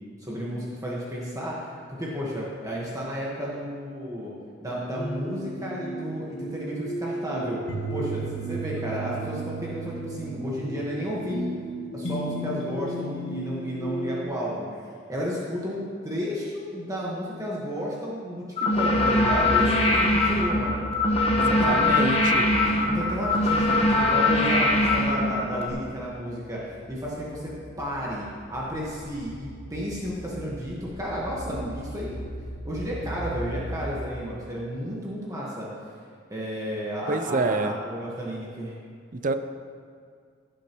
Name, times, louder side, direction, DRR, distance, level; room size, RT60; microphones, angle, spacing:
voice 1, 0.2-4.3 4.6-7.6 7.9-11.5 11.9-21.1 21.4-22.1 22.8-27.5 27.8-32.3 32.6-35.7 36.3-38.7, equal, 20° right, -6 dB, 1.4 m, -32 dB
Uneasy Rest, 5.0-14.2, right 2 dB, 80° left, 1.4 m, -34 dB
sound 1, 18.6-25.7, left 2 dB, 35° left, 1.1 m, -22 dB
sound 2, 18.9-34.6, equal, 70° right, 1.7 m, -39 dB
voice 2, 21.5-22.6 37.1-37.7 39.1-39.3, right 3 dB, 45° right, 9 dB, 0.6 m, -27 dB
16.5 x 8.5 x 3.1 m, 2.1 s
head